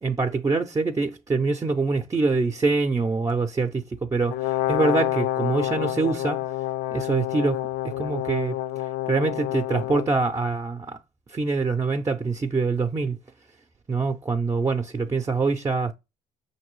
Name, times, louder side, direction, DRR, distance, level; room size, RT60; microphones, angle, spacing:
voice 1, 0.0-3.8 4.1-6.4 6.9-7.6 8.0-8.5 9.1-11.0 11.3-13.2 13.9-15.9, right 4 dB, 20° right, 0.4 m, -24 dB
Brass instrument, 4.3-10.1, left 14 dB, 80° left, 0.4 m, -28 dB
5.8 x 2.7 x 3.0 m
cardioid pair, 110°, 17 cm